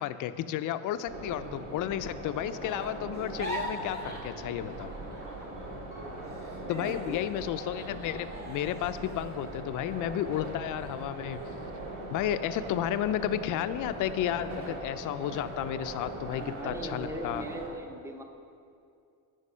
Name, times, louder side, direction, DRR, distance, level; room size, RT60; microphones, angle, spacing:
voice 1, 0.0-4.9 6.7-11.4 12.1-17.4, left 11 dB, 55° left, 12 dB, 0.5 m, -32 dB
sound 1, 1.1-17.7, right 1 dB, 60° right, 2.1 m, -40 dB
sound 2, 3.1-5.6 5.9-10.3 10.8-10.9 11.3-11.8, right 1 dB, 25° right, 2.0 m, -43 dB
voice 2, 6.7-7.2 16.4-18.2, right 1 dB, 5° right, 5 dB, 0.7 m, -39 dB
9.8 x 5.2 x 5.5 m, 2.4 s
cardioid pair, 105°, 38 cm